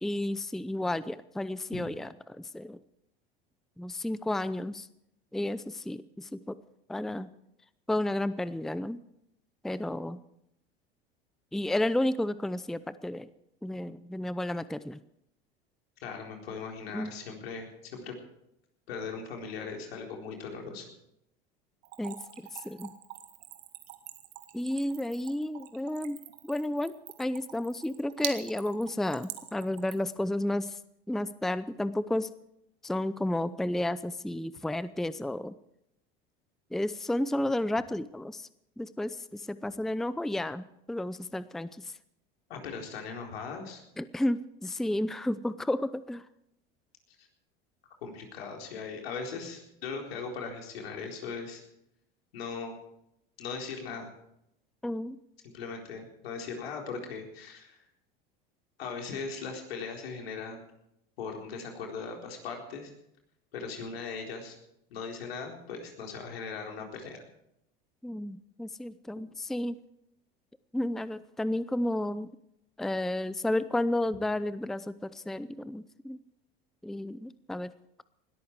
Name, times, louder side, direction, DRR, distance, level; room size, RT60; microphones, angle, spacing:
voice 1, 0.0-2.8 3.8-4.9 5.3-6.6 6.9-7.3 7.9-9.0 9.6-10.2 11.5-13.3 13.6-15.0 16.9-17.1 22.0-22.2 22.5-22.9 24.5-26.2 26.4-26.9 27.2-30.8 31.1-32.3 32.8-35.5 36.7-38.5 38.8-42.0 44.0-46.3 54.8-55.2 68.0-69.8 70.7-72.3 72.8-76.2 76.8-77.7, left 1 dB, ahead, 16 dB, 0.6 m, -32 dB
voice 2, 16.0-18.1 18.9-20.9 42.5-43.8 47.2-47.3 48.0-51.6 52.3-52.8 53.4-54.1 55.5-57.8 58.8-60.6 61.2-62.9 63.5-64.6 64.9-67.2, left 5 dB, 85° left, 2 dB, 4.2 m, -39 dB
Splash splatter / Trickle dribble, 21.8-30.1, right 14 dB, 60° right, 2.0 m, -43 dB
20.5 x 13.5 x 4.7 m, 0.79 s
hypercardioid pair, 90°, 30 cm